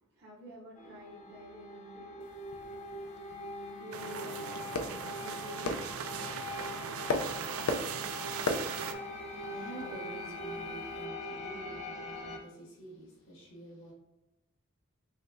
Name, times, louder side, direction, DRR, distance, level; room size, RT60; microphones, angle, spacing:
voice 1, 0.1-2.3 3.7-5.9, equal, 50° right, 0.7 m, -49 dB
sound 1, 0.8-12.4, left 1 dB, 30° left, 0.4 m, -42 dB
sound 2, 2.2-11.0, left 3 dB, 90° left, 0.4 m, -40 dB
sound 3, 3.9-8.9, right 7 dB, 80° right, 0.3 m, -39 dB
voice 2, 9.2-13.9, right 2 dB, 60° left, 1.4 m, -48 dB
4.2 x 3.1 x 2.5 m
head